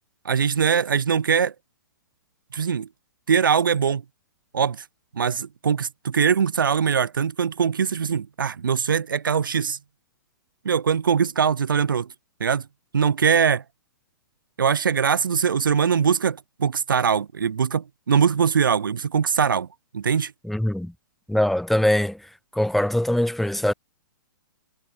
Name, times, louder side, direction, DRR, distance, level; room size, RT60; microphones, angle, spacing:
voice 1, 0.2-1.5 2.5-2.9 3.3-4.0 4.5-4.8 5.1-9.8 10.6-12.1 12.4-12.6 12.9-13.6 14.6-19.7 19.9-20.3, right 7 dB, 70° right, 2.6 m, -22 dB
voice 2, 20.4-20.9 21.3-22.2 22.5-23.7, left 1 dB, ahead, 5.8 m, -22 dB
figure-of-eight pair, 120°, 11 cm